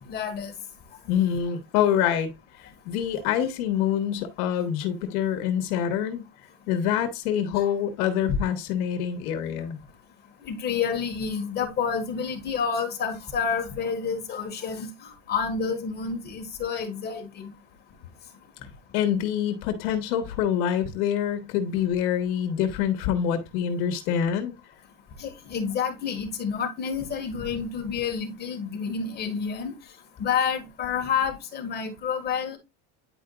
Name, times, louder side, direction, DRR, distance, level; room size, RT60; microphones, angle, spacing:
voice 1, 0.1-0.5 7.5-7.7 10.5-17.5 25.2-29.7 30.2-32.6, left 6 dB, 20° left, 1.7 m, -29 dB
voice 2, 1.1-2.3 2.6-6.2 6.7-9.8 18.9-24.5, left 9 dB, 80° left, 1.4 m, -26 dB
9.9 x 4.9 x 2.3 m
cardioid pair, 170°, 44 cm